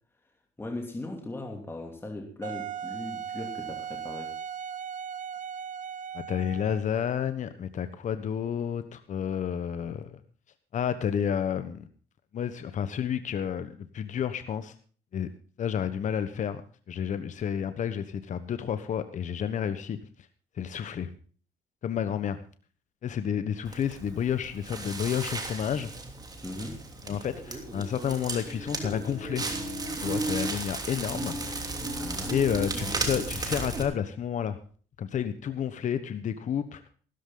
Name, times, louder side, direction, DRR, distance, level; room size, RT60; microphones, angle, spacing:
voice 1, 0.6-4.4 26.4-26.8 31.9-32.3, left 2 dB, 15° left, 2 dB, 2.8 m, -38 dB
Wind instrument woodwind instrument, 2.4-6.9, right 8 dB, 50° right, 0.9 m, -37 dB
voice 2, 6.1-10.2 10.7-11.9 12.3-14.7 15.1-15.3 15.6-16.6 16.9-20.0 20.6-21.1 21.8-22.4 23.0-25.9 27.0-29.4 30.0-31.3 32.3-34.6 35.0-36.8, left 8 dB, 45° left, 11 dB, 1.2 m, -30 dB
Crackle, 23.6-33.8, right 2 dB, 20° right, 3.0 m, -34 dB
15.5 x 13.5 x 3.9 m, 0.41 s
cardioid pair, 110°, 17 cm